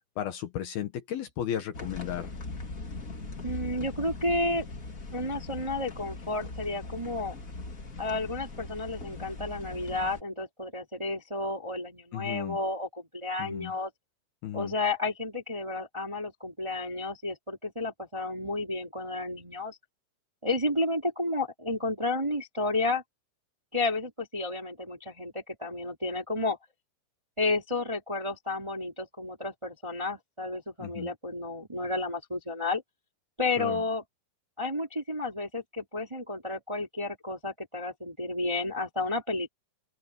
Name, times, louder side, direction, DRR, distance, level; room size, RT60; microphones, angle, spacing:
voice 1, 0.0-2.3 12.1-12.6 13.4-13.7 14.4-14.7 30.8-31.1 33.6-33.8, left 11 dB, 65° left, 2.9 m, -34 dB
sound 1, 1.7-10.2, left 3 dB, 35° left, 1.4 m, -40 dB
voice 2, 3.4-4.7 5.1-7.3 8.0-13.9 14.5-19.8 20.4-23.0 23.7-26.6 27.4-32.8 33.4-34.0 34.6-39.5, left 2 dB, 10° right, 1.9 m, -31 dB
open air
omnidirectional pair, 5.3 m